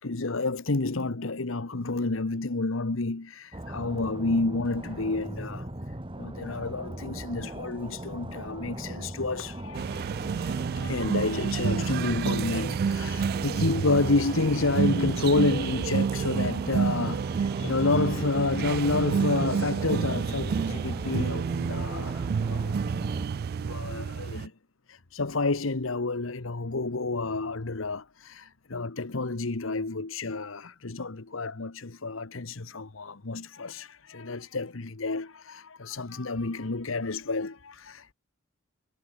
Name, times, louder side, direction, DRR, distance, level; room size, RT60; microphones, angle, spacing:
voice 1, 0.0-5.7 6.2-22.8 23.6-24.5 24.9-38.1, left 3 dB, 70° left, 1.2 m, -30 dB
sound 1, 3.5-23.3, right 1 dB, 25° right, 2.4 m, -39 dB
sound 2, 9.7-24.5, right 6 dB, 50° right, 0.3 m, -29 dB
head